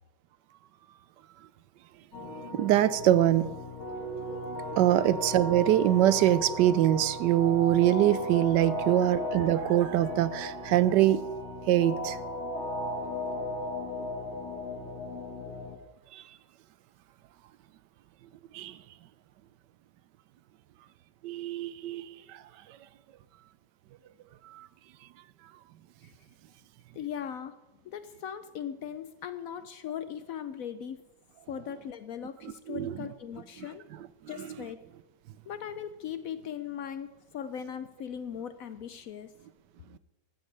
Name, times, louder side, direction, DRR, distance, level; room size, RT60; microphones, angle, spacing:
sound 1, 2.1-15.8, equal, 45° left, 1.7 m, -36 dB
voice 1, 2.5-3.5 4.8-11.2 11.7-12.2 16.1-16.2 18.5-18.7 21.2-22.4 24.5-24.7 32.7-33.0, right 12 dB, 85° right, 16 dB, 1.2 m, -24 dB
voice 2, 26.9-27.6 27.8-31.0 31.5-33.8 34.3-34.8 35.5-39.3, left 8 dB, 70° left, 11 dB, 0.9 m, -39 dB
14.5 x 13.0 x 3.3 m, 1.0 s
omnidirectional pair, 1.9 m